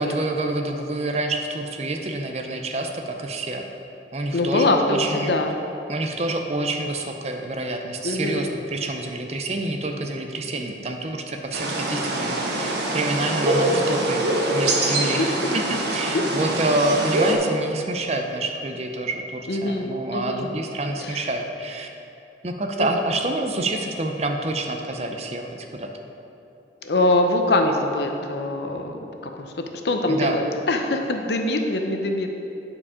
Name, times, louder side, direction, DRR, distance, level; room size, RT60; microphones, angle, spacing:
voice 1, 0.0-3.7 4.1-5.3 5.9-21.9 22.4-25.9 30.1-30.4, right 2 dB, 35° right, 4 dB, 0.6 m, -27 dB
voice 2, 4.3-5.5 8.0-8.5 14.8-15.3 16.1-16.2 19.5-20.5 21.0-21.3 22.8-22.9 26.8-29.5 29.8-32.3, left 2 dB, 70° left, 4 dB, 0.7 m, -23 dB
sound 1, 11.5-17.4, right 1 dB, 70° right, 1.1 m, -24 dB
9.8 x 4.8 x 4.9 m, 2.8 s
head